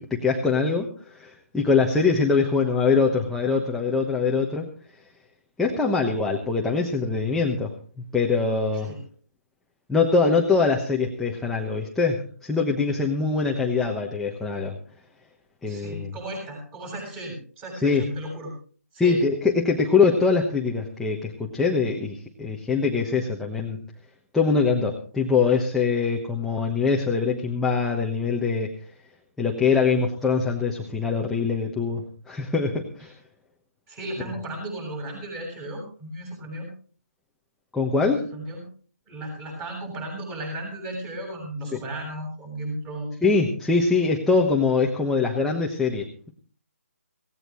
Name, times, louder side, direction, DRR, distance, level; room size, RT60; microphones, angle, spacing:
voice 1, 0.0-4.7 5.6-7.7 8.1-8.9 9.9-14.8 15.6-16.1 17.8-18.1 19.0-23.8 24.3-28.7 29.4-33.1 37.7-38.2 41.7-41.8 43.2-46.3, left 4 dB, 5° left, -1 dB, 1.1 m, -23 dB
voice 2, 15.6-18.5 18.9-19.2 33.9-36.7 38.1-38.6 39.1-43.2, right 1 dB, 15° right, 2 dB, 7.3 m, -35 dB
17.5 x 17.5 x 3.1 m, 0.42 s
hypercardioid pair, 160°, 8 cm